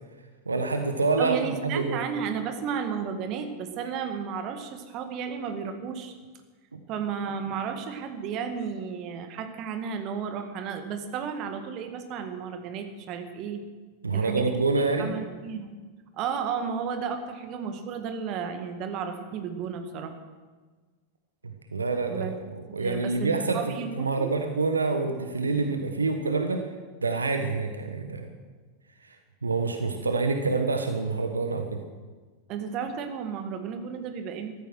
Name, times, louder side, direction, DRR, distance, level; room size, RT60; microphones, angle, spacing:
voice 1, 0.5-2.0 6.7-6.8 14.0-15.1 21.4-23.6 24.0-26.6 27.0-28.3 29.1-29.2 29.4-31.8, right 3 dB, 75° right, 6 dB, 1.3 m, -27 dB
voice 2, 1.2-6.1 6.9-13.6 14.1-14.6 15.0-15.7 16.1-20.2 22.1-22.3 22.8-24.3 32.5-34.5, right 6 dB, 40° right, 7 dB, 1.8 m, -33 dB
14.0 x 13.5 x 6.3 m, 1.4 s
figure-of-eight pair, 90°, 0 cm